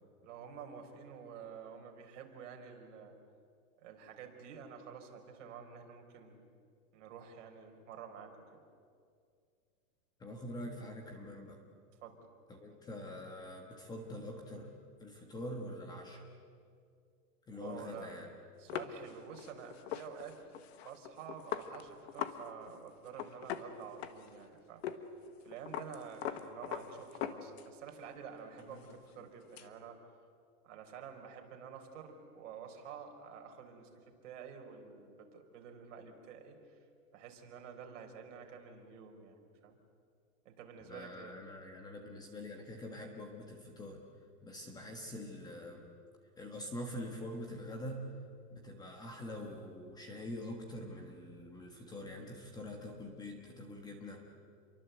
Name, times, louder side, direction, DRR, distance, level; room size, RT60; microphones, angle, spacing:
voice 1, 0.2-3.1 3.8-6.4 6.9-8.6 12.0-12.2 17.6-18.1 18.6-20.4 20.8-24.8 25.4-30.0 30.6-36.8 37.1-39.8 40.4-41.4, right 7 dB, 50° right, 4 dB, 4.4 m, -49 dB
voice 2, 10.2-11.6 12.5-14.7 15.0-16.2 17.5-18.3 40.9-44.0 44.4-45.8 46.4-48.2 48.5-54.3, left 1 dB, 10° left, 2 dB, 1.4 m, -45 dB
sound 1, 18.7-22.4 22.7-22.8 23.1-24.4 24.8-25.0 25.3-27.9 28.3-29.7, left 10 dB, 45° left, 1.5 m, -42 dB
28.5 x 23.5 x 8.0 m, 2.3 s
supercardioid pair, 175°, 45 cm